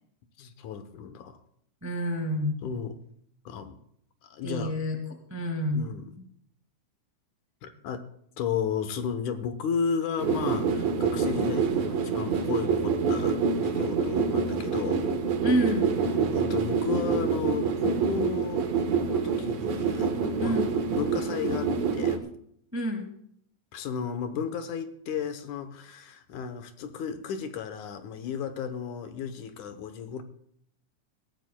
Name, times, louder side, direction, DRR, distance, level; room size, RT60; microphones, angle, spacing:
voice 1, 0.4-1.4 2.6-3.0 3.5-3.8 4.2-4.7 5.7-6.3 7.6-8.1 8.4-15.1 16.3-18.7 19.1-20.6 20.9-22.3 23.7-30.2, left 6 dB, 75° left, 9 dB, 2.4 m, -33 dB
voice 2, 1.8-2.6 4.4-5.8 15.4-16.0 20.4-20.7 22.7-23.1, equal, 10° right, 3 dB, 1.1 m, -28 dB
sound 1, 10.2-22.2, right 5 dB, 65° right, 2.4 m, -26 dB
21.0 x 15.5 x 2.3 m, 0.68 s
omnidirectional pair, 3.5 m